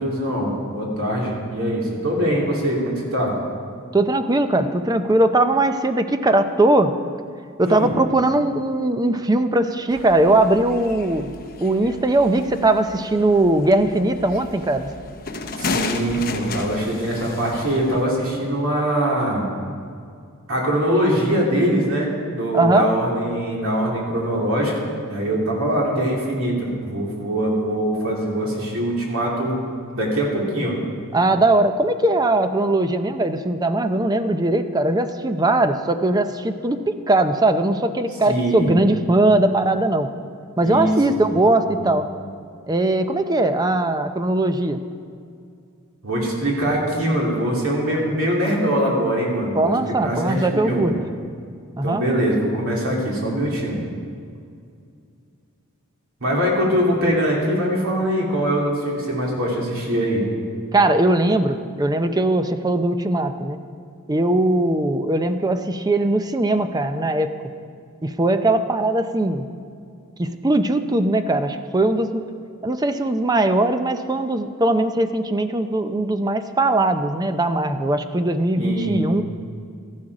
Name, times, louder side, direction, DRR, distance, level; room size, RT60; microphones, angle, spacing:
voice 1, 0.0-3.3 7.6-7.9 15.6-19.5 20.5-24.7 25.0-29.6 29.9-30.8 38.3-38.7 40.6-40.9 41.8-41.9 46.0-49.7 50.0-50.9 51.8-53.8 56.2-60.2 78.6-79.0, equal, 65° right, -3 dB, 3.1 m, -22 dB
voice 2, 3.9-6.9 7.6-11.3 11.6-14.9 22.5-22.9 31.1-40.1 40.6-42.1 42.7-44.8 49.5-50.9 51.8-52.0 60.7-63.6 64.1-67.3 68.0-69.5 70.2-72.2 72.6-79.2, right 2 dB, 15° right, 8 dB, 0.5 m, -20 dB
sound 1, 9.9-18.0, left 3 dB, 40° left, 0.9 m, -33 dB
14.0 x 11.5 x 4.9 m, 2.3 s
head